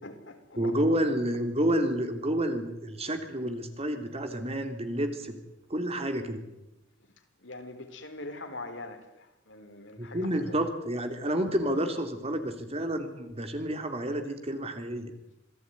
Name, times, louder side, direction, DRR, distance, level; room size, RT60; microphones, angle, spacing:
voice 1, 0.0-0.7 7.4-10.5, left 2 dB, 70° left, 6 dB, 4.2 m, -43 dB
voice 2, 0.6-5.4 5.7-6.4 10.0-15.1, right 1 dB, 35° right, 6 dB, 3.3 m, -29 dB
27.0 x 17.5 x 9.7 m, 0.89 s
head